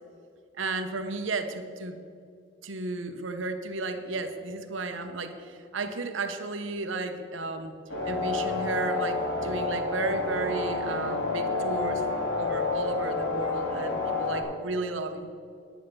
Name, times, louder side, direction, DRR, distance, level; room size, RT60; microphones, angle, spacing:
voice 1, 0.6-2.0 2.6-7.7 8.0-15.3, right 3 dB, 80° right, 8 dB, 1.0 m, -33 dB
sound 1, 7.9-14.4, left 3 dB, 65° left, 3.1 m, -29 dB
10.0 x 8.9 x 6.8 m, 2.3 s
head